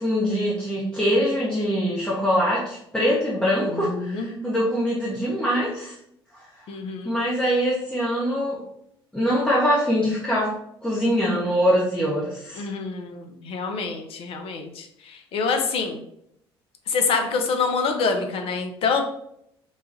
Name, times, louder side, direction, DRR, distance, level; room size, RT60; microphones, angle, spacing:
voice 1, 0.0-6.0 7.0-8.6 9.1-10.5 10.8-12.7, equal, 5° left, -7 dB, 0.7 m, -23 dB
voice 2, 3.7-4.3 6.7-7.2 12.6-16.0 16.9-19.0, left 4 dB, 45° left, 5 dB, 0.5 m, -26 dB
3.2 x 2.2 x 2.6 m, 0.73 s
figure-of-eight pair, 55°, 13 cm